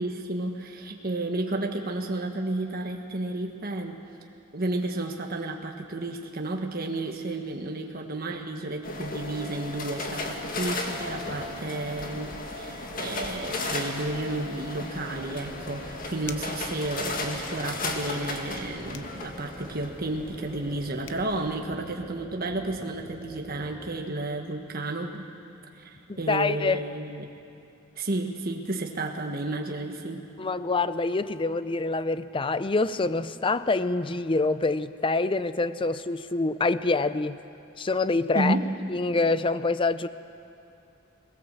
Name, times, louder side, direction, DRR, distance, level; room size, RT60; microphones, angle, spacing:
voice 1, 0.0-4.0 4.5-25.3 25.8-27.3 28.0-30.3 38.3-38.7, right 2 dB, 50° right, 2 dB, 1.4 m, -32 dB
sound 1, 8.8-21.5, left 2 dB, 45° left, 1.9 m, -35 dB
sound 2, 15.1-23.9, equal, 5° right, 2.4 m, -45 dB
sound 3, 16.2-16.6 18.9-19.2 20.7-20.8 21.0-21.3, left 9 dB, 65° left, 0.9 m, -43 dB
voice 2, 26.1-26.8 30.4-37.4 37.8-38.6 38.9-40.1, left 3 dB, 25° left, 14 dB, 0.5 m, -26 dB
21.0 x 19.5 x 7.5 m, 2.7 s
head